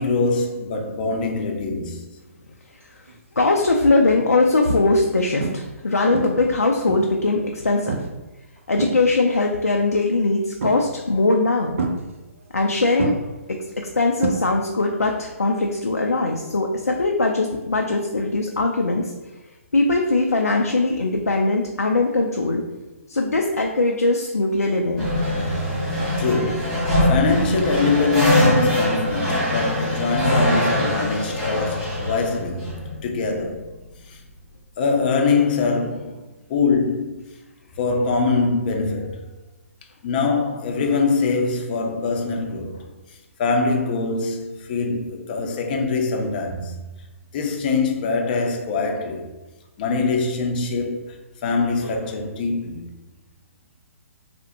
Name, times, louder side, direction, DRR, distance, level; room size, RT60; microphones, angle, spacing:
voice 1, 0.0-2.0 26.2-32.7 33.0-33.7 34.1-34.2 34.8-37.2 37.7-39.3 40.0-46.8 47.3-49.3 49.8-52.8, left 4 dB, 35° left, 0.5 m, -23 dB
sound 1, 3.1-3.4 4.0-4.1 4.7-5.1 5.4-5.8 6.1-7.3 7.9-8.2 8.6-9.4 10.6-11.1 11.8-12.7 13.0-14.9 15.1-15.6 17.6-17.7, right 4 dB, 60° right, 0.4 m, -29 dB
voice 2, 3.4-8.0 8.7-11.8 12.5-13.1 14.0-19.1 19.7-22.6 23.1-25.1, left 2 dB, 90° left, 0.4 m, -20 dB
sound 2, 25.0-33.6, left 1 dB, ahead, 1.3 m, -22 dB
3.3 x 2.1 x 2.8 m
figure-of-eight pair, 135°, 8 cm